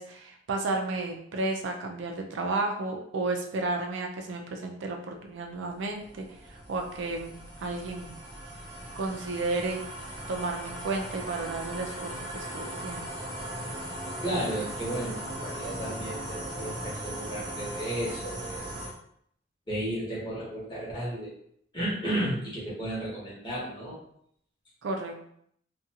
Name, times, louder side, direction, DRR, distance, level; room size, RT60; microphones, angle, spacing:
voice 1, 0.0-8.2 9.0-9.8 10.3-13.1 24.8-25.3, right 3 dB, 70° right, 3 dB, 0.4 m, -32 dB
sound 1, 5.4-18.9, right 1 dB, 20° right, 0.6 m, -38 dB
voice 2, 14.2-18.6 19.7-21.3 21.7-24.0, right 1 dB, 25° left, -7 dB, 1.0 m, -33 dB
2.5 x 2.3 x 2.7 m, 0.69 s
head